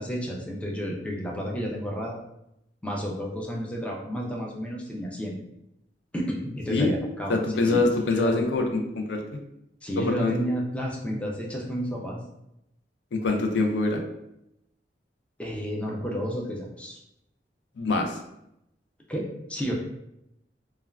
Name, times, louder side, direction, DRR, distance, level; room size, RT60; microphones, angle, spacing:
voice 1, 0.0-2.2 2.8-5.3 6.1-8.5 9.8-12.2 15.4-17.0 19.1-19.7, equal, 5° left, -1 dB, 0.3 m, -31 dB
voice 2, 7.3-9.2 10.0-10.3 13.1-14.0 17.8-18.2, left 3 dB, 85° left, 3 dB, 0.4 m, -24 dB
3.4 x 2.2 x 2.2 m, 0.82 s
head